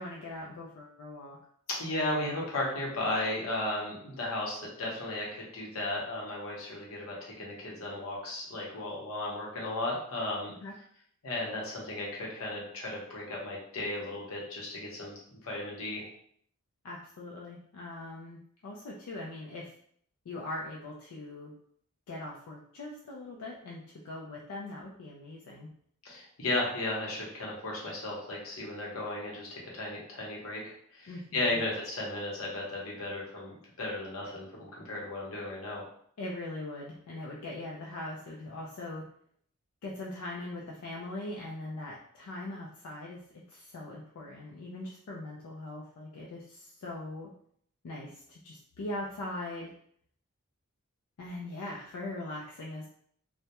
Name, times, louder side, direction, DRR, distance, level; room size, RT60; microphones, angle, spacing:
voice 1, 0.0-1.4 10.6-10.7 16.8-19.7 20.3-21.5 22.1-25.7 31.1-31.6 36.2-39.1 39.8-43.2 43.5-47.3 47.8-49.7 51.2-52.9, left 2 dB, 85° left, -3 dB, 0.4 m, -41 dB
voice 2, 1.8-10.5 11.2-16.0 26.0-35.8, left 2 dB, 70° left, -3 dB, 0.8 m, -35 dB
2.2 x 2.1 x 2.8 m, 0.64 s
head